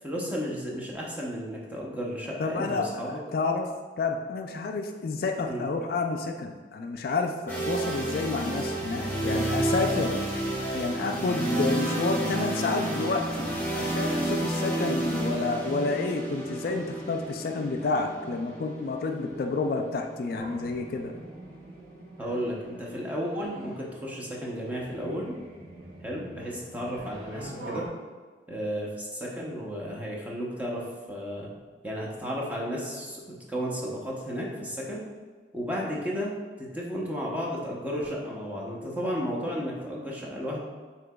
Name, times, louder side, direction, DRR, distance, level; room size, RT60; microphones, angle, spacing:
voice 1, 0.0-3.2 5.4-5.7 22.2-25.4 26.0-27.9 28.5-31.5 31.8-35.0 35.5-36.3 36.6-40.6, equal, 10° right, -4 dB, 0.7 m, -33 dB
voice 2, 2.4-3.7 4.0-10.2 10.7-21.1, left 3 dB, 55° left, 4 dB, 0.3 m, -30 dB
sound 1, 7.5-21.3, right 1 dB, 10° left, 1.5 m, -31 dB
sound 2, 20.4-27.9, right 1 dB, 60° right, 1.1 m, -45 dB
7.7 x 2.8 x 2.3 m, 1.5 s
head